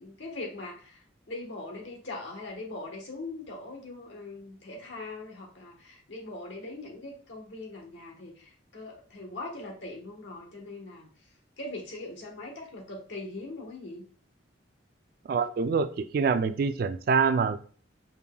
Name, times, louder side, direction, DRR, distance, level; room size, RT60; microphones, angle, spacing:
voice 1, 0.0-11.1 11.6-14.0, left 2 dB, 75° left, 0 dB, 1.2 m, -41 dB
voice 2, 15.3-17.6, right 5 dB, 55° right, 12 dB, 0.3 m, -25 dB
5.2 x 2.9 x 2.2 m, 0.43 s
head